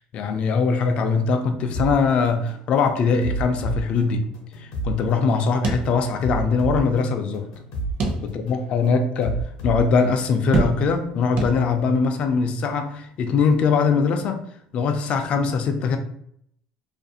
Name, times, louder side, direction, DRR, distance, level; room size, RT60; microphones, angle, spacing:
voice 1, 0.1-4.3 4.6-7.4 8.2-9.4 9.6-14.4 14.7-16.0, left 5 dB, 45° left, 6 dB, 0.4 m, -21 dB
sound 1, 1.7-1.9 2.5-2.7 3.2-4.9 5.5-5.7 6.2-7.9 8.5-8.7 9.2-10.7, right 3 dB, 80° left, 0.7 m, -30 dB
sound 2, 5.6-6.5 6.8-6.9 8.0-8.6 9.2-9.3 10.5-11.1 11.4-12.0, right 2 dB, 55° right, 0.6 m, -26 dB
2.5 x 2.4 x 2.6 m, 0.69 s
cardioid pair, 130°, 3 cm